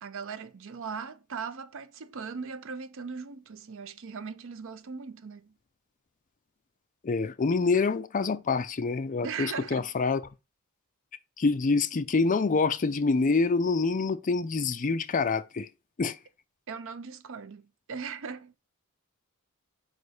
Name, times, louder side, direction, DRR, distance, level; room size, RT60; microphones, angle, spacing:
voice 1, 0.0-5.5 9.2-9.9 16.7-18.5, right 5 dB, 60° right, 0.5 m, -39 dB
voice 2, 7.0-10.2 11.4-15.7 16.0-16.2, left 4 dB, 35° left, 0.4 m, -26 dB
5.2 x 4.1 x 4.7 m
head